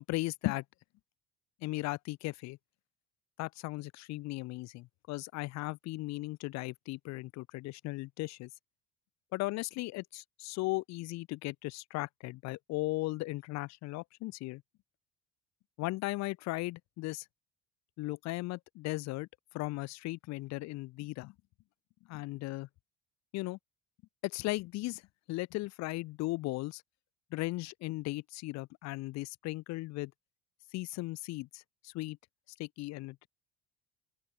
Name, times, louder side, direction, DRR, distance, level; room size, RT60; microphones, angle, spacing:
voice 1, 0.1-0.6 1.6-2.6 3.4-8.5 9.3-14.6 15.8-17.3 18.0-19.3 19.5-21.3 22.1-22.7 23.3-23.6 24.2-25.0 25.3-26.8 27.3-30.1 30.7-32.2 32.6-33.3, left 20 dB, 55° left, 1.1 m, -37 dB
open air
cardioid pair, 175°, 32 cm